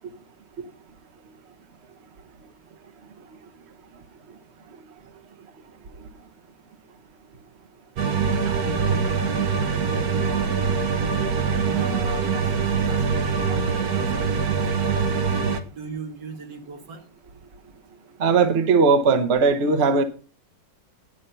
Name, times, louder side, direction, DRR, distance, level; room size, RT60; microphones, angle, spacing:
sound 1, 8.0-15.6, right 5 dB, 60° right, 1.4 m, -23 dB
voice 1, 8.4-10.5 11.6-12.5 12.8-15.0 15.7-17.0, right 4 dB, 75° right, 2.4 m, -38 dB
voice 2, 18.2-20.0, right 4 dB, 45° right, 1.0 m, -18 dB
9.8 x 8.6 x 5.5 m
omnidirectional pair, 1.9 m